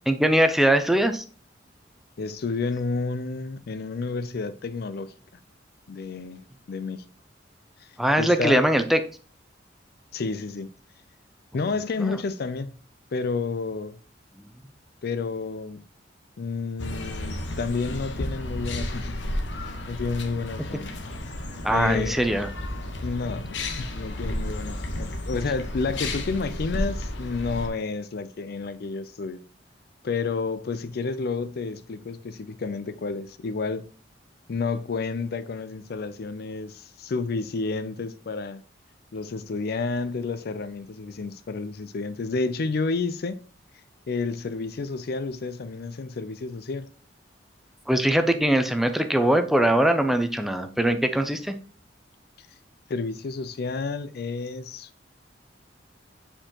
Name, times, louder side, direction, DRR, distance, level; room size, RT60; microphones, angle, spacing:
voice 1, 0.1-1.2 8.0-9.0 12.0-12.2 21.6-22.5 47.9-51.5, right 1 dB, ahead, 0.5 m, -21 dB
voice 2, 2.2-5.1 5.9-7.0 7.8-7.9 8.2-8.7 10.1-10.7 11.5-12.7 13.1-14.0 15.0-15.9 16.4-20.9 21.7-22.2 23.0-29.4 30.0-33.9 34.5-38.6 39.1-43.4 44.1-46.9 52.9-54.9, left 4 dB, 60° left, 0.4 m, -30 dB
sound 1, 16.8-27.7, left 1 dB, 80° left, 1.0 m, -32 dB
7.5 x 4.5 x 2.9 m
head